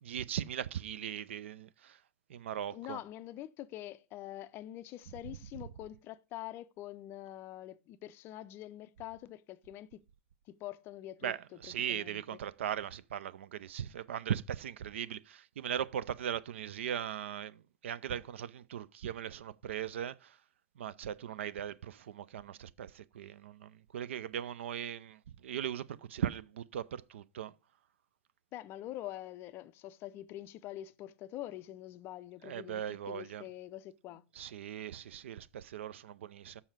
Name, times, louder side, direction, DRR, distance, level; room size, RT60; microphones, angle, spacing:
voice 1, 0.0-2.0 2.3-3.0 5.3-5.4 11.2-20.4 20.8-27.5 32.4-33.4 34.4-36.6, right 9 dB, 60° right, 0.4 m, -39 dB
voice 2, 2.7-10.0 10.5-11.3 11.6-12.2 28.5-34.2, left 14 dB, 30° left, 0.4 m, -45 dB
7.1 x 5.5 x 6.0 m
figure-of-eight pair, 100°, 7 cm